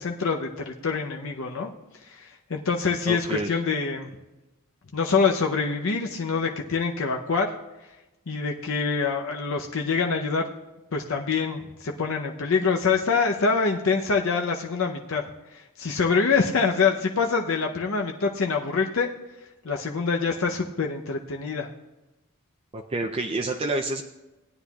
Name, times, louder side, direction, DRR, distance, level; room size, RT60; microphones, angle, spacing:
voice 1, 0.0-1.7 2.1-4.1 4.9-7.6 8.3-10.5 10.9-15.2 15.8-19.1 19.6-21.7, left 5 dB, 65° left, 1 dB, 0.7 m, -25 dB
voice 2, 3.1-3.5 22.7-24.0, right 2 dB, 25° right, 3 dB, 0.5 m, -28 dB
17.5 x 9.9 x 2.3 m, 1.0 s
head